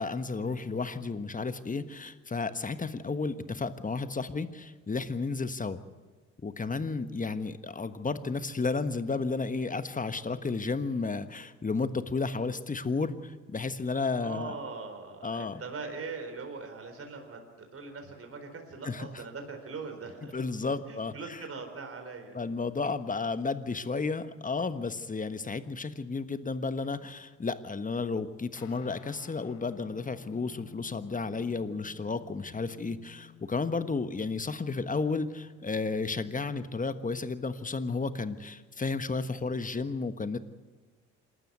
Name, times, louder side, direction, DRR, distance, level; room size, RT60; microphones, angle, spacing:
voice 1, 0.0-5.8 6.4-14.5 15.2-15.6 18.8-19.1 20.3-21.4 22.3-40.4, left 4 dB, 20° left, 11 dB, 1.4 m, -32 dB
voice 2, 14.1-20.4 20.9-22.4, right 4 dB, 40° right, 5 dB, 4.3 m, -41 dB
Guitar, 28.6-37.4, left 13 dB, 75° left, 1.4 m, -55 dB
27.0 x 12.5 x 8.1 m, 1.4 s
hypercardioid pair, 55°, 36 cm